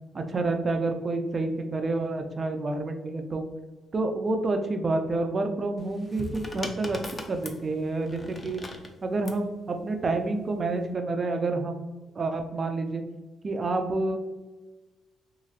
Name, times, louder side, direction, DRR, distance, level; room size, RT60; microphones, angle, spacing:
voice 1, 0.1-3.4 3.9-7.0 7.3-8.6 9.0-11.9 12.2-13.0 13.4-14.2, right 2 dB, 35° right, 5 dB, 0.4 m, -28 dB
sound 1, 5.8-9.4 10.5-10.9, left 2 dB, 25° left, 0.4 m, -40 dB
3.2 x 2.9 x 2.4 m, 1.2 s
cardioid pair, 90°, 0 cm